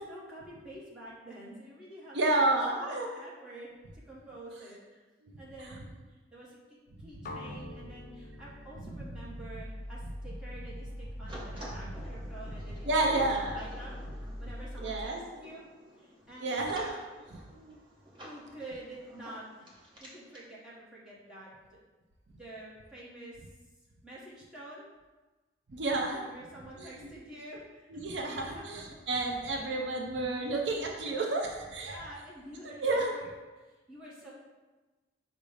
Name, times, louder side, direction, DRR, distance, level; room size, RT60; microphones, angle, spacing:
voice 1, 0.0-2.4 2.8-5.0 5.4-13.9 14.4-15.7 16.0-16.7 18.2-21.8 22.3-23.4 24.0-24.8 26.1-28.8 29.2-29.8 31.8-33.3 33.5-34.3, right 1 dB, 5° right, -8 dB, 1.1 m, -48 dB
voice 2, 2.1-3.1 5.3-5.4 8.8-9.0 12.9-13.7 14.8-15.4 16.4-16.9 17.3-17.8 25.7-26.2 26.8-27.1 27.9-32.0 32.6-33.1, right 2 dB, 65° right, 0 dB, 0.5 m, -31 dB
sound 1, 7.2-11.2, left 2 dB, 50° left, 0.4 m, -49 dB
sound 2, 7.5-15.0, equal, 20° left, 1.0 m, -43 dB
sound 3, 11.3-20.5, equal, 25° right, 0.8 m, -50 dB
5.2 x 2.0 x 4.8 m, 1.2 s
head